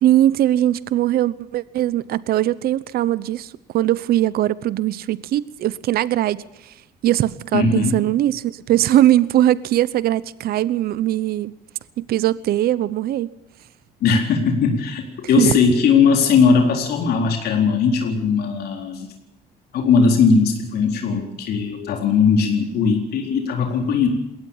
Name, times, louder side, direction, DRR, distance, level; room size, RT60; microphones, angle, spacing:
voice 1, 0.0-6.7 7.0-11.5 12.0-13.3 15.4-15.5, right 13 dB, 65° right, 18 dB, 0.9 m, -20 dB
voice 2, 7.5-7.9 14.0-19.1 19.7-24.1, left 5 dB, 70° left, 3 dB, 4.1 m, -18 dB
21.5 x 18.0 x 7.3 m, 0.86 s
cardioid pair, 110°, 17 cm